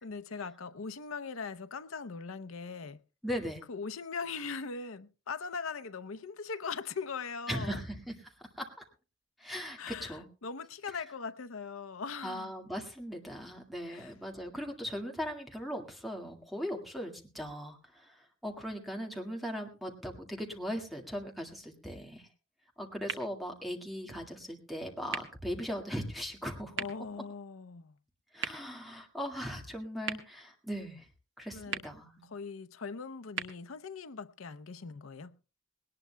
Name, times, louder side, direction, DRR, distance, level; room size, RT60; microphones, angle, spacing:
voice 1, 0.0-3.0 3.7-7.8 9.8-12.5 13.9-14.1 26.8-27.9 31.5-31.8 32.3-35.3, left 5 dB, 85° left, 0.7 m, -40 dB
voice 2, 3.2-3.6 7.5-8.7 9.4-10.3 10.9-11.0 12.2-22.3 22.8-26.9 28.3-31.1 31.4-32.3, equal, ahead, 1.9 m, -39 dB
sound 1, 23.0-34.9, right 6 dB, 60° right, 1.5 m, -45 dB
19.5 x 18.5 x 2.3 m
head